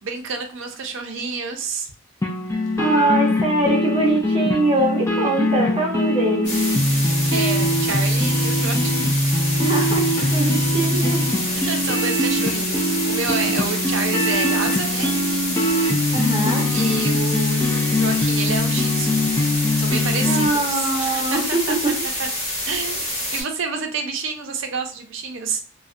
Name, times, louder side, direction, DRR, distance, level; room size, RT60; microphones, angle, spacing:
voice 1, 0.0-1.9 2.6-2.7 7.3-9.1 11.5-15.1 16.7-19.3 19.8-21.7 22.2-22.3 22.7-23.0 23.3-25.6, right 5 dB, 60° right, 4 dB, 0.5 m, -29 dB
sound 1, 2.2-20.5, left 1 dB, 15° left, 0.3 m, -22 dB
voice 2, 2.8-6.5 9.6-11.3 16.1-16.7 20.2-21.9, right 2 dB, 25° right, -1 dB, 0.7 m, -22 dB
sound 2, 6.4-23.4, left 1 dB, 30° left, 1.3 m, -27 dB
2.3 x 2.1 x 2.5 m, 0.41 s
head